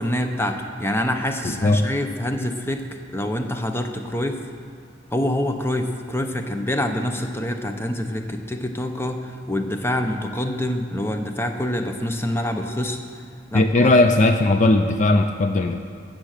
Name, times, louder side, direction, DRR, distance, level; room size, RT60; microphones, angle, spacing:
voice 1, 0.0-4.5 5.1-13.0 13.5-13.9, left 1 dB, 15° left, 5 dB, 0.8 m, -26 dB
voice 2, 1.4-1.8 13.5-15.8, left 2 dB, 40° left, 6 dB, 0.5 m, -18 dB
15.0 x 7.6 x 6.6 m, 2.1 s
head